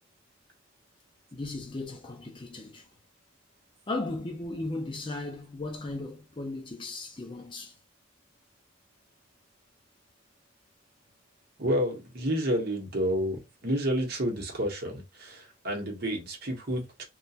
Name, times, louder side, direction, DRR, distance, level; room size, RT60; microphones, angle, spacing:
voice 1, 1.3-2.8 3.9-7.7, left 2 dB, 25° left, 0.4 m, -36 dB
voice 2, 11.6-17.0, equal, 50° right, 0.8 m, -30 dB
2.3 x 2.1 x 2.7 m
head